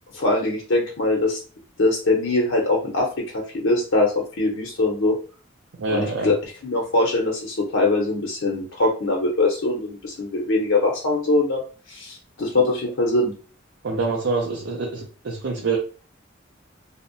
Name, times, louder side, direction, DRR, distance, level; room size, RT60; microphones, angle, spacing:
voice 1, 0.1-1.4 1.8-5.2 5.9-6.4 6.6-11.6 11.9-13.3, left 2 dB, 75° left, -1 dB, 0.6 m, -22 dB
voice 2, 5.7-6.3 13.8-15.8, right 3 dB, 85° right, -1 dB, 0.5 m, -26 dB
2.6 x 2.1 x 2.5 m, 0.37 s
head